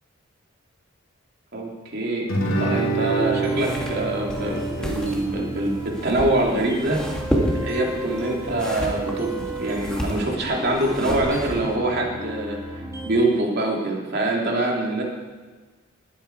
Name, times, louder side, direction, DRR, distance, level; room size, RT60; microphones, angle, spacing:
voice 1, 1.5-2.3 2.6-7.0 7.6-12.6 13.0-15.0, right 1 dB, 50° right, -1 dB, 3.1 m, -24 dB
Guitar, 2.3-7.4, right 3 dB, 80° left, 3.4 m, -28 dB
sound 1, 3.1-13.1, right 1 dB, 15° right, 2.7 m, -35 dB
sound 2, 3.6-11.8, equal, 5° left, 2.3 m, -31 dB
20.5 x 9.9 x 4.8 m, 1.4 s
head